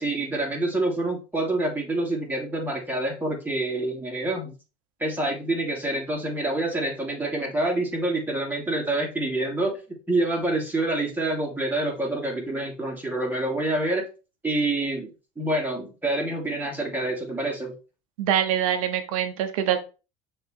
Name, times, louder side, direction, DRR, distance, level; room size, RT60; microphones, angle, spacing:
voice 1, 0.0-4.5 5.0-9.8 10.1-14.1 14.4-17.7, right 2 dB, 10° right, -1 dB, 2.8 m, -27 dB
voice 2, 18.2-19.8, right 10 dB, 80° right, 9 dB, 1.1 m, -24 dB
6.4 x 3.4 x 4.5 m, 0.32 s
hypercardioid pair, 80°, 17 cm